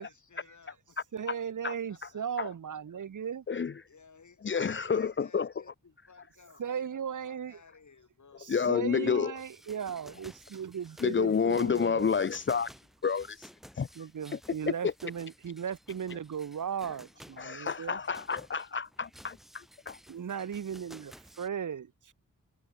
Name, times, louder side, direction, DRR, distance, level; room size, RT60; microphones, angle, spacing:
voice 1, 0.0-2.6 3.8-8.5, left 5 dB, 55° left, 4.4 m, -59 dB
voice 2, 1.1-3.4 6.6-7.6 8.4-12.1 14.0-18.0 20.1-22.1, right 7 dB, 60° right, 0.8 m, -37 dB
voice 3, 4.4-5.5 8.5-9.3 11.0-12.7 13.0-13.5 13.8-13.9 14.8-14.9 17.4-20.0, left 6 dB, 35° left, 0.5 m, -29 dB
sound 1, 9.4-21.5, equal, ahead, 1.4 m, -55 dB
wide cardioid pair, 125°, 34 cm